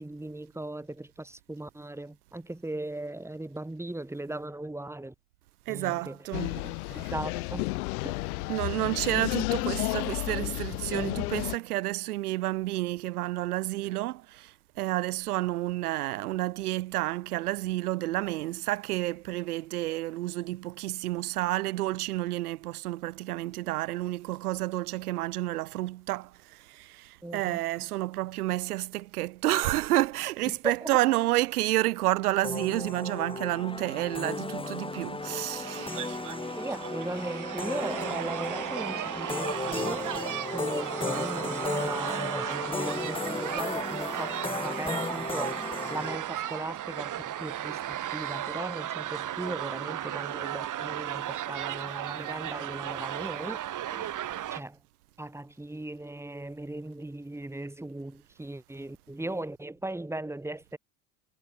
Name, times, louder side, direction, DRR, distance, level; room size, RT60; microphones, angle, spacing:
voice 1, 0.0-5.1 5.7-6.2 6.9-7.6 8.0-8.1 27.2-27.6 30.6-30.9 36.6-44.3 44.6-53.6 53.9-54.2 54.5-54.8 55.2-60.8, right 1 dB, 5° right, 3.0 m, -38 dB
voice 2, 5.7-7.1 8.5-36.0, right 17 dB, 90° right, 1.9 m, -30 dB
sound 1, 6.3-11.6, left 23 dB, 80° left, 1.3 m, -32 dB
sound 2, 32.4-46.2, left 2 dB, 10° left, 5.8 m, -35 dB
sound 3, 35.6-54.6, right 12 dB, 45° right, 2.6 m, -35 dB
supercardioid pair, 90°, 44 cm